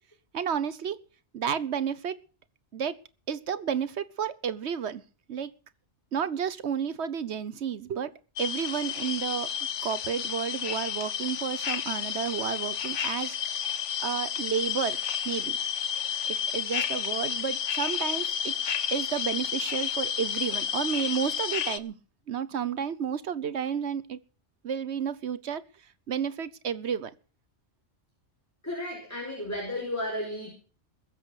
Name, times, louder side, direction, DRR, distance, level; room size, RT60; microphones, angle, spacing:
voice 1, 0.3-1.0 1.3-2.2 2.7-2.9 3.3-5.0 5.3-5.5 6.1-8.1 8.4-9.5 9.8-13.4 14.0-15.6 16.3-18.5 18.9-22.0 22.3-24.2 24.6-25.6 26.1-27.1, right 7 dB, 70° right, 1.2 m, -31 dB
sound 1, 8.4-21.8, left 8 dB, 80° left, 1.3 m, -31 dB
voice 2, 28.6-30.5, left 1 dB, 15° left, 5.2 m, -33 dB
21.5 x 7.5 x 6.3 m
omnidirectional pair, 1.2 m